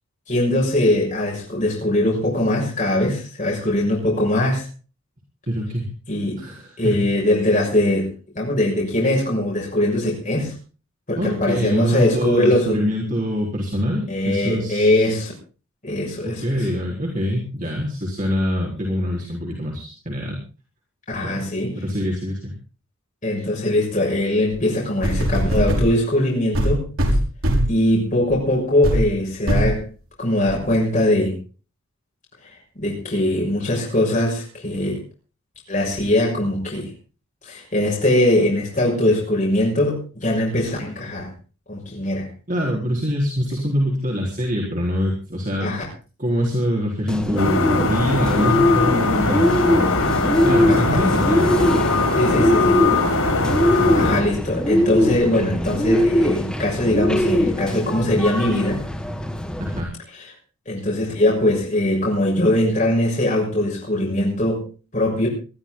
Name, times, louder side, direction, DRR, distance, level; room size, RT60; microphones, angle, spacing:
voice 1, 0.3-4.6 6.1-6.4 6.8-8.1 8.3-10.5 11.1-12.9 14.1-15.3 15.8-16.4 21.1-21.7 23.2-26.8 27.6-29.9 30.2-31.4 32.8-35.0 35.7-36.9 37.4-41.3 41.7-42.3 45.6-45.8 50.7-51.1 52.2-52.8 54.0-58.8 60.7-64.6 64.9-65.3, left 1 dB, 35° left, -3 dB, 6.5 m, -21 dB
voice 2, 5.5-5.9 6.4-7.1 11.2-15.1 16.2-20.4 21.2-21.4 21.8-22.5 42.5-45.8 46.2-50.2 50.4-52.1 53.7-54.2 59.6-59.9, equal, 35° right, -2 dB, 4.1 m, -25 dB
sound 1, 24.5-24.6 25.0-25.9 26.5-27.8 28.3-28.5 28.8-29.1 29.5-29.8 30.5-30.6, equal, 70° right, 5.2 m, -20 dB
Bird, 47.1-59.8, left 1 dB, 5° left, 2.2 m, -22 dB
sound 2, 47.4-54.2, left 3 dB, 85° left, 6.7 m, -21 dB
21.5 x 13.5 x 3.9 m, 0.36 s
head